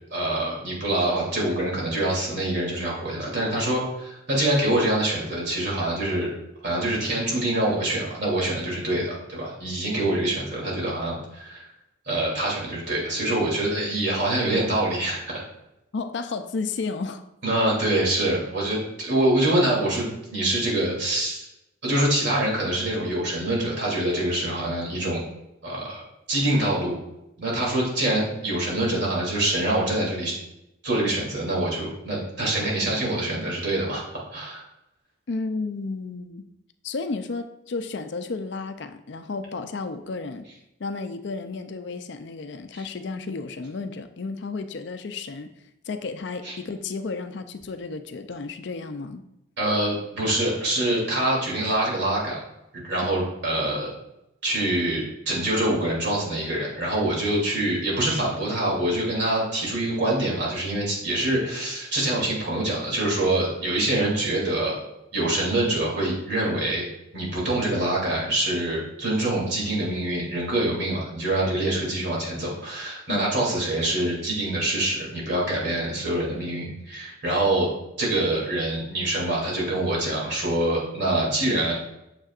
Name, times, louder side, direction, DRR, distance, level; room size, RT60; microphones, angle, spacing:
voice 1, 0.1-6.3 6.6-11.7 12.1-15.4 17.4-21.5 21.8-25.3 25.6-27.0 27.4-30.3 30.8-34.0 34.3-34.6 42.7-42.8 46.4-46.5 49.6-52.4 52.8-53.9 54.4-64.8 65.1-66.8 67.1-77.7 78.0-81.7, right 1 dB, 55° right, 2.7 m, -25 dB
voice 2, 15.9-17.2 35.3-36.5 36.8-40.5 40.8-45.5 45.9-49.2 73.1-73.3, left 4 dB, 55° left, 0.4 m, -32 dB
9.1 x 6.8 x 2.4 m
head